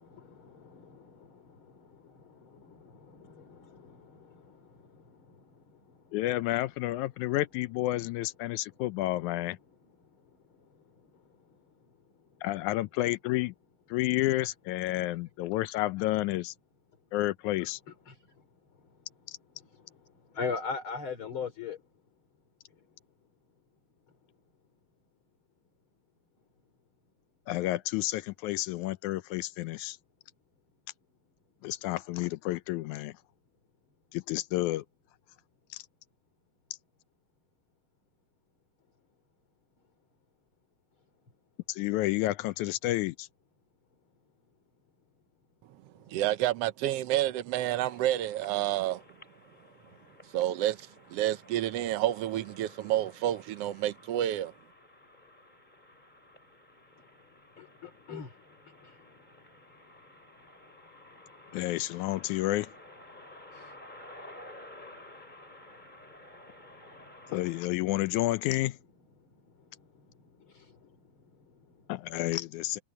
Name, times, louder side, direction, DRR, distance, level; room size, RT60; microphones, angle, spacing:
voice 1, 0.0-7.4 8.1-12.6 15.1-15.4 16.9-17.2 17.6-25.4 25.9-27.1 29.9-31.9 33.3-34.0 35.4-35.8 38.8-39.2 39.7-40.2 40.9-41.6 43.8-46.2 49.4-50.4 52.6-52.7 54.9-65.2 66.3-68.4 68.8-72.4 72.7-72.8, left 5 dB, 40° left, 3.9 m, -48 dB
voice 2, 6.1-9.6 12.4-13.5 13.9-16.5 17.1-17.8 19.3-19.4 27.5-30.0 31.6-33.1 34.1-34.8 35.7-35.8 41.7-43.3 61.5-62.7 67.3-68.8 71.9-72.8, left 16 dB, 80° left, 1.8 m, -30 dB
voice 3, 46.1-49.0 50.3-54.5, right 13 dB, 90° right, 1.3 m, -29 dB
sound 1, 47.9-67.6, left 1 dB, 10° left, 5.5 m, -53 dB
omnidirectional pair, 3.8 m